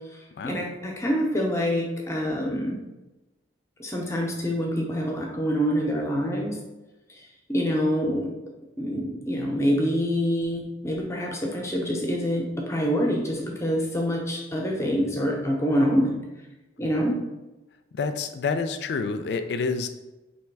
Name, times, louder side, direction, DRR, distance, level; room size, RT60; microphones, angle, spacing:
voice 1, 0.4-2.8 3.8-6.6 7.5-8.3 8.8-16.2 16.8-17.1, equal, 15° left, 0 dB, 0.6 m, -26 dB
voice 2, 17.9-19.9, left 4 dB, 70° left, 9 dB, 0.3 m, -28 dB
3.2 x 2.9 x 4.5 m, 1.1 s
head